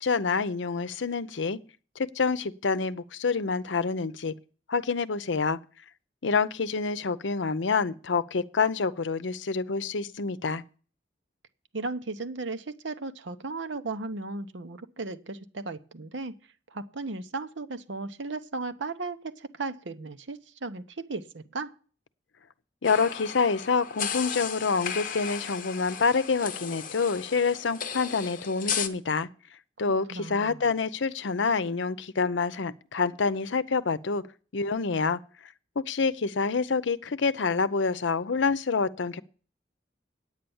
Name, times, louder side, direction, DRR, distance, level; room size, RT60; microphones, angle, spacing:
voice 1, 0.0-1.6 2.0-4.3 4.7-5.6 6.2-10.6 22.8-29.3 29.8-34.2 34.5-35.2 35.8-39.2, left 4 dB, 85° left, 0.7 m, -27 dB
voice 2, 11.7-16.3 16.7-21.7 30.1-30.7, right 3 dB, 85° right, 0.9 m, -36 dB
sound 1, 22.8-28.9, left 7 dB, 45° left, 0.9 m, -35 dB
9.4 x 9.0 x 7.1 m
head